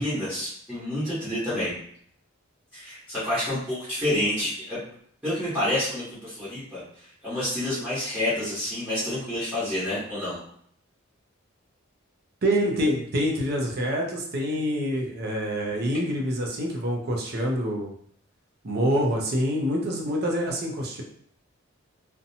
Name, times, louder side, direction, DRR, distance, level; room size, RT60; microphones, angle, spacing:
voice 1, 0.0-1.7 2.7-4.8 5.2-6.8 7.2-10.4, left 1 dB, 5° right, -13 dB, 1.2 m, -28 dB
voice 2, 12.4-17.9 18.6-21.0, equal, 50° right, 0 dB, 0.5 m, -26 dB
2.7 x 2.1 x 2.7 m, 0.62 s
head